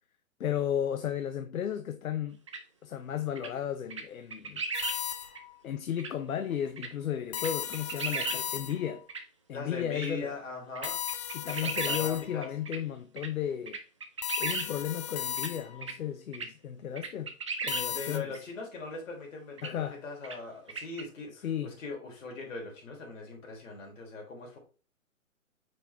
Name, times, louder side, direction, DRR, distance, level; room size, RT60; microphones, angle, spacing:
voice 1, 0.4-2.4 2.8-4.6 5.6-9.0 9.5-10.3 11.3-13.8 14.4-17.3 17.6-18.4 19.6-20.0 21.4-21.8, left 9 dB, 80° left, 0.8 m, -34 dB
sound 1, 2.5-2.6 3.3-3.5 3.9-4.0 4.3-5.0 5.3-5.4 6.0-6.1 6.8-6.9 7.4-8.4 8.7-8.8 9.1-9.2 9.9-10.1 10.7-12.0 12.4-12.8 13.2-13.3 13.7-14.7 15.4-15.5 15.8-15.9 16.3-16.5 16.9-17.8 18.3-18.4 19.6-19.7 20.2-20.4 20.7-21.0, right 4 dB, 25° right, 0.4 m, -35 dB
sound 2, 4.7-5.6 7.3-9.0 10.8-12.5 14.2-15.9 17.7-18.2, left 10 dB, 30° left, 0.5 m, -36 dB
voice 2, 9.5-11.0 11.5-12.5 17.9-24.6, left 3 dB, 65° left, 3.6 m, -41 dB
5.3 x 5.2 x 3.4 m
hypercardioid pair, 150°, 41 cm